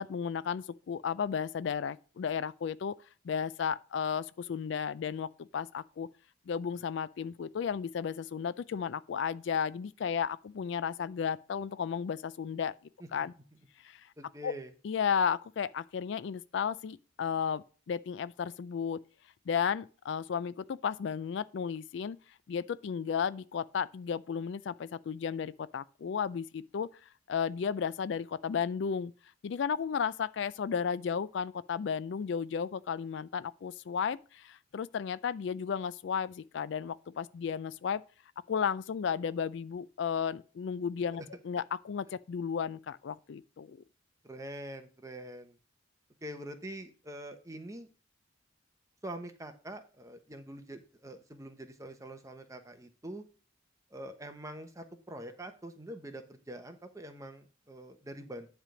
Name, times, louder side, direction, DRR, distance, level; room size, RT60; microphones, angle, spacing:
voice 1, 0.0-3.0 3.2-6.1 6.5-12.7 13.1-13.3 13.8-14.1 14.4-14.5 14.8-19.0 19.5-22.2 22.5-26.9 27.3-29.1 29.4-38.0 38.5-43.8, left 7 dB, 60° left, 0.3 m, -34 dB
voice 2, 14.2-14.7 41.1-41.3 44.2-45.6 46.2-47.9 49.0-53.2 53.9-58.5, right 1 dB, 15° right, 0.9 m, -44 dB
10.0 x 3.4 x 6.2 m
head